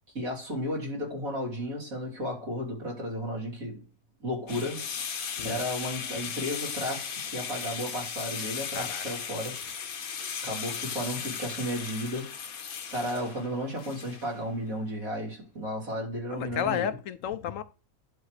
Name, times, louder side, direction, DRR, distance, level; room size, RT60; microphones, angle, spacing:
voice 1, 0.1-3.8 4.2-4.9 5.4-9.6 10.4-12.3 12.9-16.9, equal, 75° right, 3.9 m, -33 dB
sound 1, 4.5-14.5, left 7 dB, 85° left, 1.5 m, -37 dB
sound 2, 6.0-10.5, left 1 dB, 25° left, 3.2 m, -52 dB
voice 2, 8.7-9.0 16.3-17.6, left 9 dB, 70° left, 1.0 m, -32 dB
11.5 x 7.1 x 3.3 m
omnidirectional pair, 1.5 m